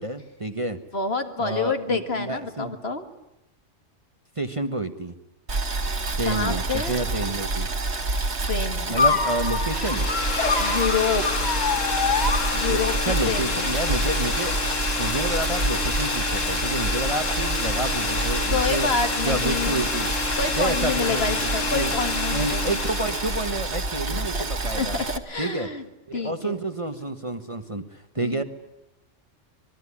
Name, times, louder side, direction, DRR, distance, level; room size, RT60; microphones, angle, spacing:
voice 1, 0.0-0.8 1.4-2.7 4.4-5.2 6.1-7.7 8.9-10.1 12.7-14.6 15.0-18.9 19.2-20.1 20.6-21.9 22.3-25.0 25.4-25.7 26.1-28.4, right 2 dB, 25° right, 8 dB, 1.3 m, -29 dB
voice 2, 0.9-3.1 6.2-7.0 8.4-9.1 10.6-11.5 12.5-13.7 18.5-19.9 20.4-22.8 24.1-24.5 24.7-25.8 26.1-26.6 28.2-28.4, left 4 dB, 55° left, 7 dB, 2.1 m, -28 dB
Boiling, 5.5-25.2, right 3 dB, 60° right, 2.0 m, -28 dB
sound 1, 8.9-13.1, left 4 dB, 35° left, 2.1 m, -26 dB
sound 2, 9.4-23.8, left 4 dB, 85° left, 2.1 m, -29 dB
26.0 x 21.0 x 9.9 m, 0.89 s
omnidirectional pair, 1.3 m